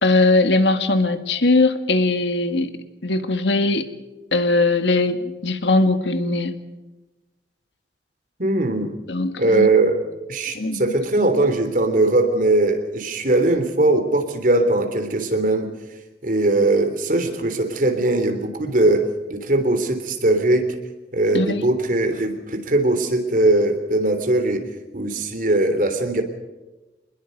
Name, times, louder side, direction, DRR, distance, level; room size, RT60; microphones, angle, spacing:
voice 1, 0.0-2.7 3.0-3.9 4.3-6.6 9.1-9.7 10.6-10.9 21.3-21.6, left 2 dB, 75° left, 8 dB, 1.8 m, -20 dB
voice 2, 8.4-8.9 9.4-9.9 10.3-15.7 16.2-20.7 21.1-24.7 24.9-26.2, right 2 dB, 50° right, 6 dB, 3.4 m, -20 dB
26.0 x 21.0 x 5.3 m, 1.1 s
head